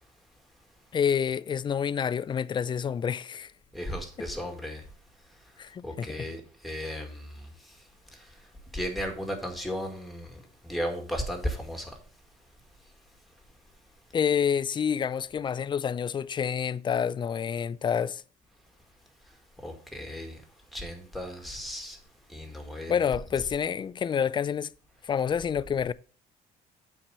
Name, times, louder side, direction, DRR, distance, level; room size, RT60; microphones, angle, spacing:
voice 1, 0.9-3.5 4.2-4.3 5.6-6.3 14.1-18.2 22.9-24.7 25.0-25.9, left 7 dB, 30° left, 0.3 m, -28 dB
voice 2, 3.7-4.8 5.8-7.3 8.7-10.3 10.6-11.9 19.6-20.4 20.7-22.0 22.3-22.9, equal, ahead, 2.0 m, -35 dB
7.2 x 4.5 x 6.6 m
cardioid pair, 110°, 17 cm